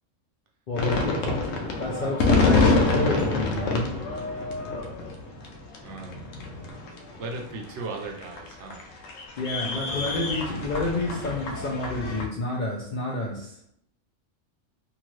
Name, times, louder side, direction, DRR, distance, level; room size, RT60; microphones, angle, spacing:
sound 1, 0.7-12.3, left 3 dB, 80° left, 0.9 m, -26 dB
voice 1, 0.7-3.9 9.4-13.6, left 2 dB, 60° left, -4 dB, 0.5 m, -29 dB
voice 2, 5.8-6.2 7.2-8.9, right 3 dB, 70° right, 2 dB, 0.8 m, -36 dB
2.8 x 2.5 x 3.0 m, 0.70 s
omnidirectional pair, 1.3 m